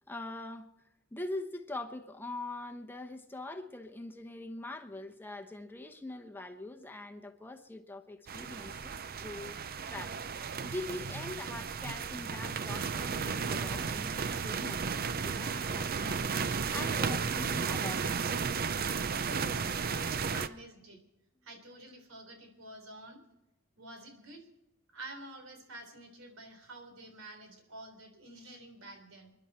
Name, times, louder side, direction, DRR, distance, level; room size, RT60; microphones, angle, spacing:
voice 1, 0.1-0.7 1.1-9.6 9.9-10.2 10.6-16.2 16.7-18.4 20.4-20.5, left 2 dB, 10° left, 0.9 m, -43 dB
sound 1, 8.3-20.5, right 5 dB, 45° right, 0.6 m, -34 dB
voice 2, 19.1-21.0 21.4-23.2 23.8-24.4 24.9-29.3, right 1 dB, 85° right, 3.8 m, -49 dB
28.0 x 11.0 x 4.3 m
head